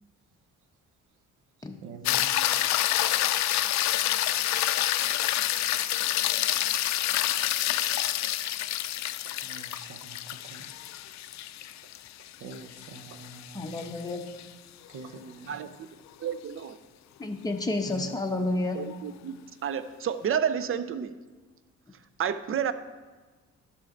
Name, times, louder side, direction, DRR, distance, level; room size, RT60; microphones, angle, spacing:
voice 1, 1.8-2.3 9.5-10.2 10.5-10.6 12.4-13.7 14.9-15.6 17.9-18.1, right 3 dB, 80° right, 8 dB, 0.9 m, -44 dB
sound 1, 2.1-14.5 18.9-19.0, left 13 dB, 65° left, 0.4 m, -28 dB
voice 2, 13.5-14.2 17.2-18.8, left 2 dB, 10° left, 3 dB, 1.0 m, -30 dB
voice 3, 16.2-16.8 18.7-19.3 19.6-21.2 22.2-22.7, right 8 dB, 45° right, 13 dB, 0.6 m, -30 dB
11.5 x 6.4 x 3.9 m, 1.3 s
cardioid pair, 90°, 30 cm